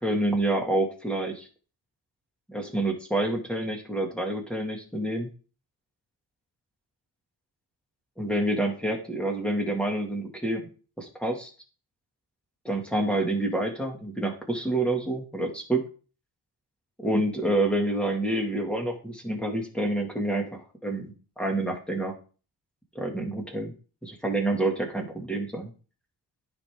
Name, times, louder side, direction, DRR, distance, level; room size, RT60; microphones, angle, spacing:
voice 1, 0.0-1.5 2.5-5.3 8.2-10.7 11.0-11.5 12.6-15.8 17.0-22.1 22.9-23.7 24.0-25.7, right 1 dB, 5° left, 1 dB, 2.3 m, -28 dB
14.5 x 5.3 x 3.8 m, 0.36 s
wide cardioid pair, 150°, 38 cm